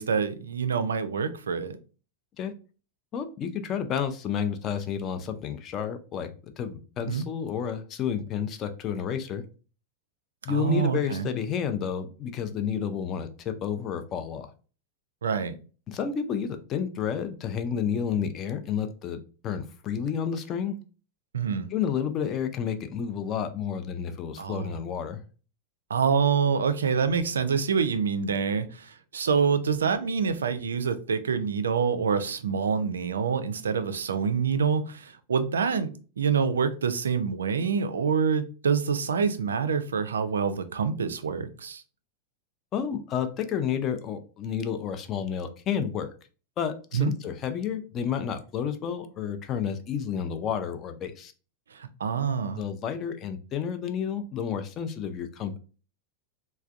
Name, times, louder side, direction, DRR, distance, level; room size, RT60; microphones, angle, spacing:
voice 1, 0.0-1.8 7.1-7.3 10.5-11.3 15.2-15.6 21.3-21.7 24.4-24.8 25.9-41.8 46.9-47.1 51.7-52.6, right 6 dB, 70° right, 11 dB, 0.3 m, -26 dB
voice 2, 3.1-6.3 6.6-9.4 10.5-14.5 15.9-19.2 19.4-20.8 21.7-25.2 42.7-46.1 46.6-51.3 52.5-55.6, left 7 dB, 30° left, 8 dB, 0.4 m, -30 dB
3.3 x 2.2 x 2.4 m, 0.36 s
figure-of-eight pair, 90°, 0 cm